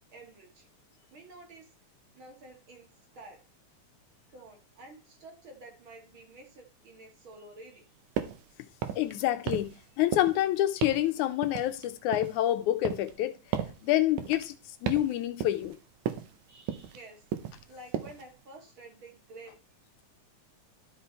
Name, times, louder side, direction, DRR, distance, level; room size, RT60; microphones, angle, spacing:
voice 1, 0.1-0.7 1.1-1.7 2.1-3.4 4.3-7.9 16.5-17.3 17.7-19.6, right 2 dB, 50° right, 2.1 m, -50 dB
sound 1, 8.2-8.4 8.8-9.1 9.5-9.8 10.1-10.4 10.8-11.1 11.4-12.4 12.8-13.2 13.5-13.8 14.2-14.5 14.9-15.1 15.4-15.8 16.1-16.3 16.7-17.0 17.3-17.6 17.9-18.2, right 9 dB, 85° right, 2.3 m, -34 dB
voice 2, 9.0-9.7 10.0-13.3 13.8-14.6 14.8-15.8, left 13 dB, 85° left, 2.1 m, -27 dB
12.5 x 4.6 x 4.3 m
omnidirectional pair, 3.5 m